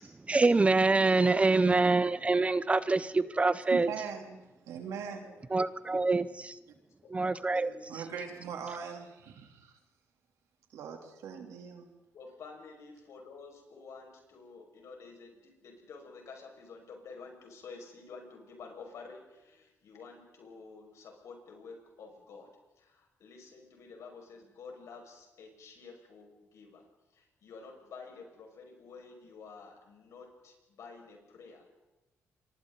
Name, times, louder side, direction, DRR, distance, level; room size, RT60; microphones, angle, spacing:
voice 1, 0.3-3.9 5.5-6.2 7.1-7.7, right 3 dB, 25° right, 15 dB, 0.7 m, -25 dB
voice 2, 3.7-4.4 4.7-5.3 7.9-9.7 10.7-11.9, right 7 dB, 85° right, 3 dB, 3.2 m, -40 dB
voice 3, 7.4-7.9 12.1-22.5 22.8-31.7, left 4 dB, 70° left, 1 dB, 5.9 m, -50 dB
28.0 x 23.5 x 4.0 m, 1.0 s
cardioid pair, 85°, 5 cm